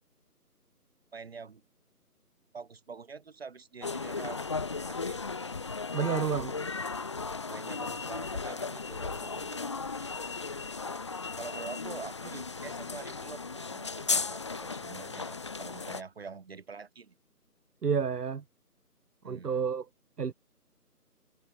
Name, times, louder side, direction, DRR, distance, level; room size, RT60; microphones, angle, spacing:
voice 1, 1.1-1.6 2.5-4.4 4.8-5.3 6.0-6.7 7.5-10.1 11.4-17.1 19.2-19.6, right 5 dB, 40° right, 6.6 m, -46 dB
sound 1, 3.8-16.0, left 4 dB, 20° left, 1.3 m, -36 dB
voice 2, 5.9-6.5 17.8-18.4 19.2-19.9 20.2-20.3, right 6 dB, 80° right, 0.8 m, -29 dB
figure-of-eight pair, 160°, 47 cm